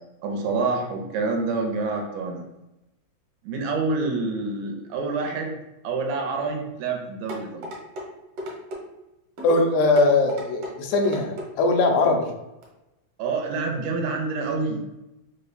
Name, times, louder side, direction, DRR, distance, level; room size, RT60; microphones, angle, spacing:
voice 1, 0.2-2.4 3.4-5.6 5.8-7.7 13.2-15.0, right 3 dB, 80° right, 2 dB, 1.9 m, -27 dB
sound 1, 7.3-8.1 8.4-8.8 9.4-9.5 10.0-10.7 11.0-11.5 12.0-12.2 12.6-12.7, equal, 65° right, 2.0 m, -35 dB
voice 2, 9.4-12.3, left 3 dB, 85° left, 3 dB, 2.0 m, -20 dB
4.9 x 2.2 x 4.0 m, 0.96 s
omnidirectional pair, 3.4 m